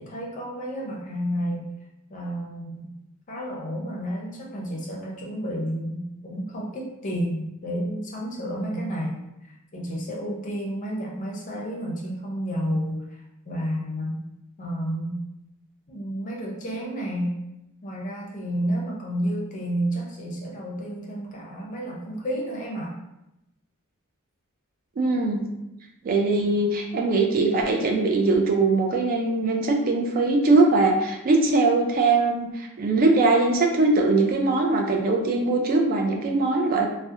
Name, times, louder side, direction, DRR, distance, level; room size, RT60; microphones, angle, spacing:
voice 1, 0.0-1.7 2.1-2.9 3.3-13.0 13.5-14.2 14.6-15.2 15.9-17.3 17.8-22.9, equal, 35° left, -2 dB, 0.5 m, -31 dB
voice 2, 25.0-25.4 26.0-36.9, right 3 dB, 40° right, 2 dB, 0.3 m, -21 dB
2.7 x 2.0 x 2.4 m, 0.90 s
head